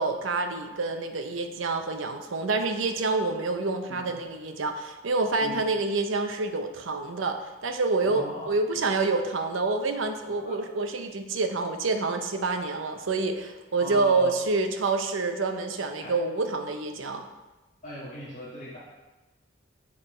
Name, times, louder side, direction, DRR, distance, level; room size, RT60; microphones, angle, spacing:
voice 1, 0.0-17.2, right 3 dB, 85° right, 6 dB, 0.7 m, -27 dB
voice 2, 8.0-8.5 10.4-10.6 13.8-14.4 16.0-16.1 17.8-18.8, left 1 dB, 40° left, -10 dB, 1.7 m, -39 dB
7.4 x 4.6 x 4.3 m, 1.1 s
head